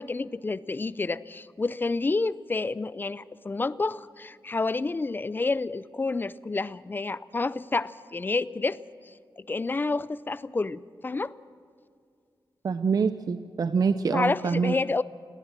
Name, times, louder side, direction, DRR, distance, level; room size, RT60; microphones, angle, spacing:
voice 1, 0.0-8.8 9.4-11.3 14.1-15.0, left 3 dB, 25° left, 18 dB, 0.4 m, -29 dB
voice 2, 12.6-14.7, right 5 dB, 50° right, 11 dB, 0.6 m, -25 dB
19.5 x 18.0 x 7.3 m, 2.3 s
wide cardioid pair, 170°, 8 cm